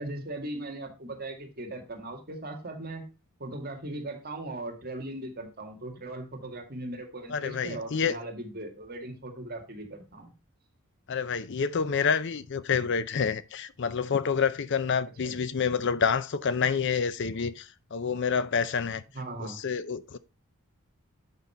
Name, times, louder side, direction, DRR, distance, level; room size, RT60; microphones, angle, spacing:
voice 1, 0.0-3.0 3.4-10.3 15.2-15.3 19.1-19.6, right 1 dB, 45° right, 2.0 m, -38 dB
voice 2, 7.3-8.1 11.1-19.0 19.4-20.2, left 6 dB, 55° left, 0.5 m, -28 dB
8.2 x 5.4 x 4.2 m
head